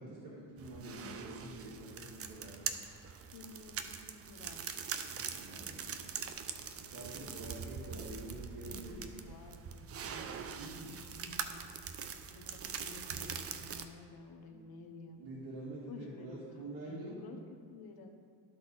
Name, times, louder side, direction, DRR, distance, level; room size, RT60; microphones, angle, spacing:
voice 1, 0.0-2.6 5.1-6.2 6.8-9.1 10.5-11.2 14.5-14.6 15.2-17.2, right 2 dB, 70° right, -7 dB, 1.9 m, -47 dB
sound 1, 0.6-13.9, right 7 dB, 35° right, 0.4 m, -43 dB
voice 2, 3.3-3.7 4.0-4.7 7.1-7.2 7.5-8.1 8.5-9.9 10.5-11.7 12.4-15.2 15.9-17.4 17.7-18.1, left 4 dB, 55° left, 4 dB, 1.0 m, -53 dB
12.5 x 4.2 x 3.9 m, 2.3 s
cardioid pair, 110°, 45 cm